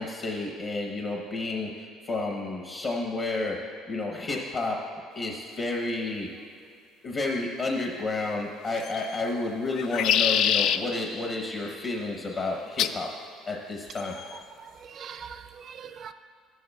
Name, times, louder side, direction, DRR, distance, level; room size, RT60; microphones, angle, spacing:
voice 1, 0.0-3.6 3.9-4.8 5.1-6.3 7.0-13.1 13.5-14.1, left 2 dB, 35° left, 0 dB, 0.8 m, -31 dB
sound 1, 8.7-9.2 9.7-10.8 12.8-13.0 14.0-14.4, left 9 dB, 60° left, 0.3 m, -25 dB
voice 2, 14.6-16.1, right 7 dB, 40° right, 10 dB, 0.4 m, -42 dB
13.0 x 11.0 x 2.3 m, 2.3 s
cardioid pair, 150°, 0 cm